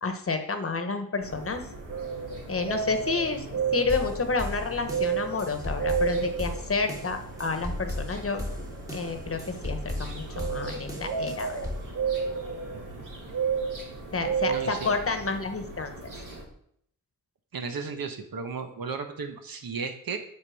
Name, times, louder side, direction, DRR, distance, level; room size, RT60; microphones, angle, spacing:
voice 1, 0.0-1.6 2.5-3.5 3.7-8.5 8.9-11.6 14.1-15.9, left 4 dB, 40° left, 7 dB, 1.0 m, -30 dB
sound 1, 1.2-16.4, right 5 dB, 60° right, 2.3 m, -33 dB
sound 2, 3.9-11.9, left 1 dB, 10° right, 1.5 m, -36 dB
voice 2, 12.7-13.1 14.4-14.9 17.5-20.2, right 5 dB, 80° right, 6 dB, 1.2 m, -35 dB
8.2 x 5.3 x 6.3 m, 0.67 s
wide cardioid pair, 140°, 35 cm